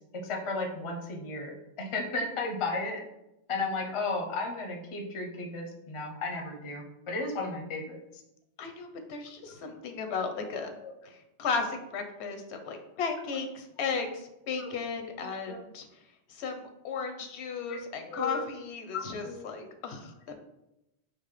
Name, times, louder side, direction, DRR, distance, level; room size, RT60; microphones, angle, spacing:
voice 1, 0.2-3.0 3.5-8.0 14.6-14.7 15.5-15.6 17.7-17.8 18.1-18.4 18.9-19.5, left 3 dB, 40° left, 2 dB, 0.5 m, -34 dB
voice 2, 8.6-10.7 11.0-16.0 16.3-20.4, left 5 dB, 85° left, 5 dB, 0.9 m, -35 dB
4.0 x 2.5 x 3.1 m, 0.88 s
omnidirectional pair, 1.1 m